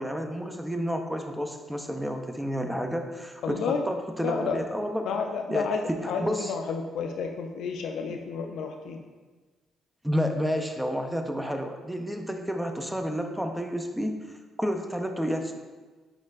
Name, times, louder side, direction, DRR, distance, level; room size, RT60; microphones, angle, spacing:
voice 1, 0.0-5.0 5.5-6.5 10.0-15.5, equal, 5° right, 5 dB, 0.4 m, -30 dB
voice 2, 3.4-3.9 4.2-4.6 5.1-9.0, left 5 dB, 75° left, 3 dB, 0.3 m, -31 dB
4.3 x 4.2 x 2.4 m, 1.3 s
cardioid pair, 90°, 0 cm